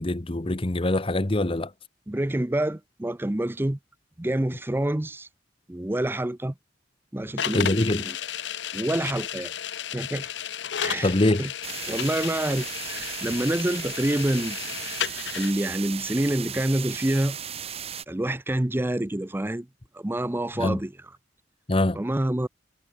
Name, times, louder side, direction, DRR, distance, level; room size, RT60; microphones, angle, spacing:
voice 1, 0.0-1.7 7.5-8.1 11.0-11.4 20.6-20.8 21.7-22.0, left 1 dB, 30° left, 1.0 m, -23 dB
voice 2, 2.1-3.8 4.2-5.3 5.7-6.5 7.1-8.2 8.7-9.5 9.9-10.3 10.8-11.1 11.4-11.5 11.9-15.0 15.4-17.4 18.1-19.7 19.9-20.9 21.9-22.5, right 1 dB, 10° right, 0.6 m, -27 dB
sound 1, 7.4-15.5, left 9 dB, 75° left, 0.8 m, -33 dB
sound 2, 11.6-18.0, right 8 dB, 35° right, 1.8 m, -36 dB
head